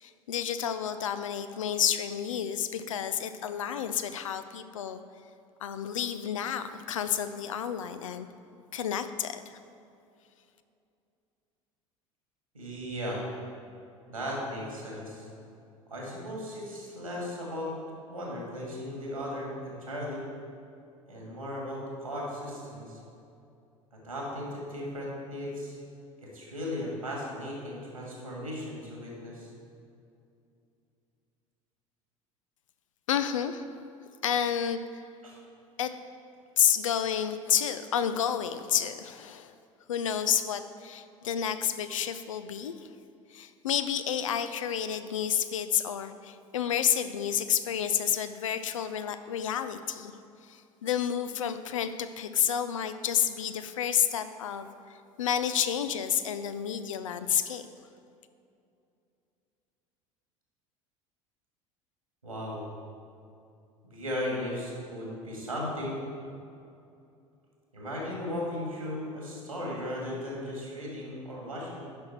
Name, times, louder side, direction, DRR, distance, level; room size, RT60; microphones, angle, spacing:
voice 1, 0.0-5.0 5.6-8.3 8.7-9.6 33.1-33.8 34.2-34.8 35.8-36.0 36.6-39.5 39.9-42.9 43.3-50.1 50.5-54.7 55.2-57.7, left 9 dB, 70° left, 11 dB, 0.5 m, -30 dB
voice 2, 12.5-13.2 14.1-15.3 15.9-17.7 18.1-20.2 21.1-23.0 24.0-25.8 26.2-29.5 35.2-35.4 62.2-62.7 63.8-66.0 67.7-71.8, left 1 dB, 85° right, -3 dB, 2.2 m, -36 dB
10.5 x 6.1 x 4.5 m, 2.6 s
figure-of-eight pair, 70°, 17 cm